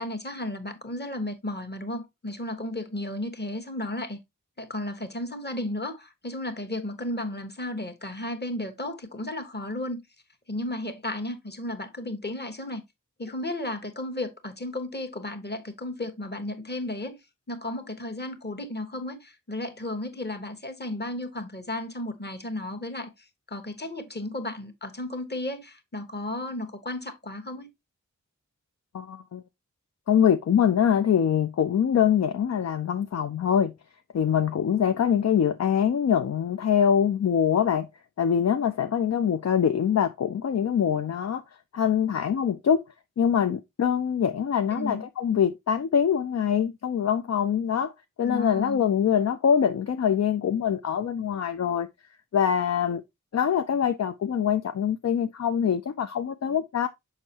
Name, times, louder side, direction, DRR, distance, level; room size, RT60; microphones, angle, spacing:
voice 1, 0.0-4.2 4.6-10.0 10.5-12.8 13.2-17.2 17.5-27.7 44.7-45.0 48.2-48.8, left 1 dB, 35° left, 1.2 m, -34 dB
voice 2, 28.9-29.4 30.1-33.7 34.1-37.9 38.2-41.4 41.7-42.8 43.2-47.9 48.2-51.9 52.3-53.0 53.3-56.9, left 8 dB, 60° left, 0.4 m, -24 dB
6.5 x 5.3 x 2.8 m
wide cardioid pair, 90°, 31 cm